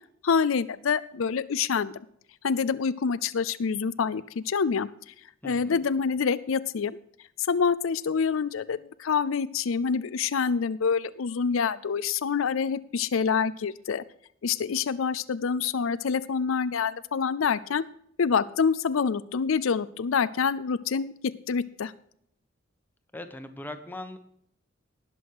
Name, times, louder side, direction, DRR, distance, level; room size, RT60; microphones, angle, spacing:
voice 1, 0.2-2.0 2.4-5.1 5.4-7.0 7.4-14.0 14.4-17.8 18.2-21.9, left 6 dB, 85° left, 15 dB, 0.5 m, -26 dB
voice 2, 5.4-5.8 23.1-24.2, left 1 dB, 10° left, 7 dB, 1.1 m, -40 dB
19.0 x 6.3 x 4.7 m, 0.68 s
head